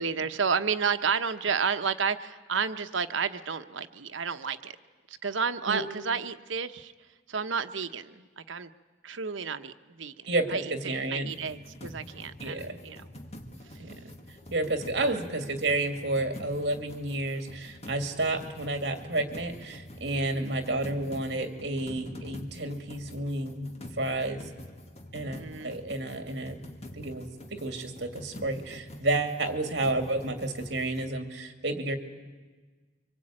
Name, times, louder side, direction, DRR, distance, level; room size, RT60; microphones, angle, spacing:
voice 1, 0.0-4.7 5.1-6.9 7.3-8.7 9.0-13.1 15.0-15.2 20.2-20.6 25.2-25.8, right 6 dB, 85° right, 10 dB, 1.0 m, -31 dB
voice 2, 10.3-11.3 12.4-12.8 13.8-14.1 14.5-23.7 24.0-24.4 25.1-26.6 27.0-32.0, right 2 dB, 60° right, 6 dB, 2.6 m, -31 dB
sound 1, 11.3-31.1, left 1 dB, 35° left, 1.7 m, -46 dB
25.0 x 24.5 x 8.8 m, 1.4 s
head